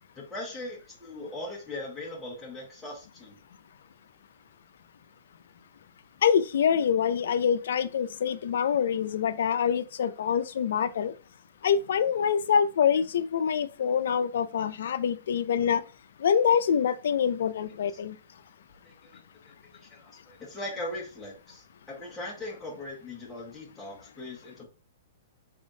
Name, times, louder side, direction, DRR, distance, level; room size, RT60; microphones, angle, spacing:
voice 1, 0.1-3.4 18.8-24.6, left 1 dB, 5° left, 1.3 m, -40 dB
voice 2, 6.2-11.1 11.6-15.8 16.2-18.2, left 7 dB, 70° left, 0.4 m, -25 dB
3.5 x 3.4 x 2.6 m
hypercardioid pair, 145°, 0 cm